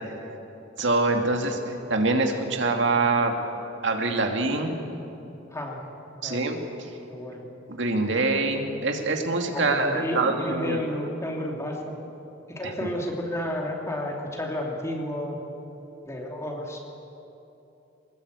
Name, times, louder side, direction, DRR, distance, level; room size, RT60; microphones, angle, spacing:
voice 1, 0.8-3.3 3.8-4.8 6.2-6.6 7.7-10.8, right 3 dB, 65° right, 3 dB, 2.4 m, -24 dB
voice 2, 5.5-5.9 6.2-6.4 7.1-7.4 9.5-12.0 12.5-15.4 16.0-16.9, left 1 dB, 15° left, 0 dB, 3.0 m, -31 dB
24.0 x 20.5 x 8.3 m, 2.9 s
head